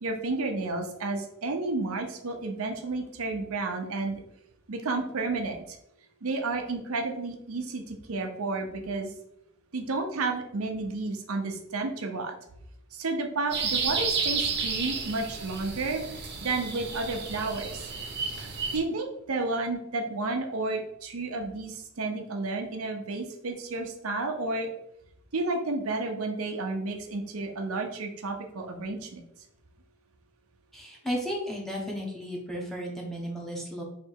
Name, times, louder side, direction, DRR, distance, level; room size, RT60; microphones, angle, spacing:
voice 1, 0.0-4.2 4.7-5.8 6.2-9.1 9.7-12.3 12.9-16.0 16.4-17.9 18.7-24.7 25.3-29.2, right 3 dB, 90° right, 3 dB, 0.7 m, -31 dB
sound 1, 13.5-18.8, right 5 dB, 55° right, 0.8 m, -31 dB
voice 2, 30.7-33.8, equal, ahead, -2 dB, 0.9 m, -34 dB
3.3 x 2.8 x 4.5 m, 0.77 s
head